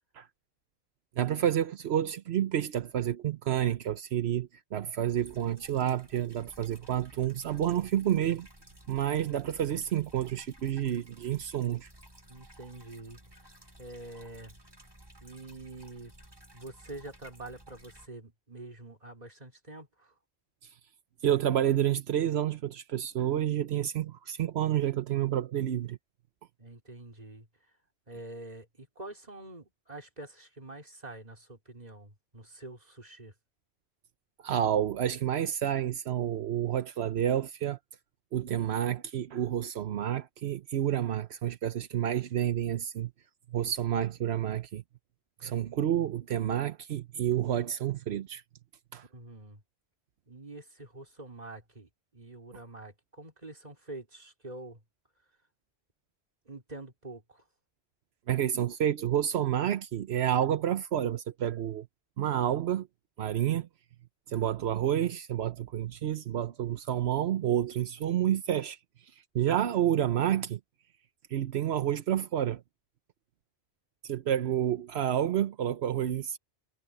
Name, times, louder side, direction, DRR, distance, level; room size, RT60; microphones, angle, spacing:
voice 1, 1.2-8.5 8.9-11.9 20.6-20.8 21.2-26.0 34.4-37.8 38.3-43.1 43.5-44.8 45.4-48.4 48.9-49.0 58.3-61.9 62.2-62.9 63.2-63.7 64.3-70.6 71.3-72.6 74.0-76.4, right 10 dB, 80° right, 1.0 m, -29 dB
sound 1, 5.2-18.1, right 1 dB, 25° right, 2.8 m, -55 dB
voice 2, 12.3-14.5 15.2-16.1 16.5-20.1 26.6-27.5 28.1-33.3 45.4-45.5 49.1-49.6 50.3-54.8 56.4-57.4, right 2 dB, 40° right, 3.4 m, -46 dB
omnidirectional pair, 1.1 m